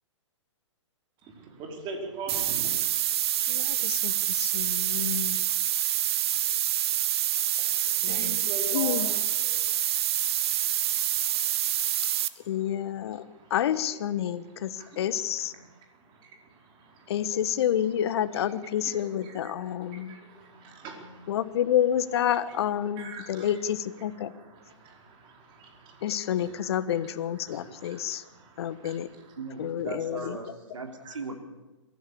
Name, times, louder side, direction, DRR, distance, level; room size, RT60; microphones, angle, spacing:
voice 1, 1.2-3.1 7.5-12.7 13.1-13.5 14.7-15.1 15.6-17.1 18.3-21.4 23.0-23.6 24.3-29.4 30.2-30.3 31.0-31.1, right 3 dB, 30° right, 2 dB, 4.7 m, -44 dB
sound 1, 2.3-12.3, right 12 dB, 55° right, 1.1 m, -27 dB
voice 2, 3.5-5.4 8.0-9.1 12.5-13.2 13.5-15.5 17.1-20.2 21.3-24.3 26.0-28.2 28.6-29.1 29.6-30.4, left 10 dB, 55° left, 13 dB, 1.3 m, -29 dB
voice 3, 29.4-31.4, right 4 dB, 85° right, 5 dB, 3.2 m, -38 dB
22.0 x 15.0 x 8.6 m, 1.1 s
hypercardioid pair, 125°, 16 cm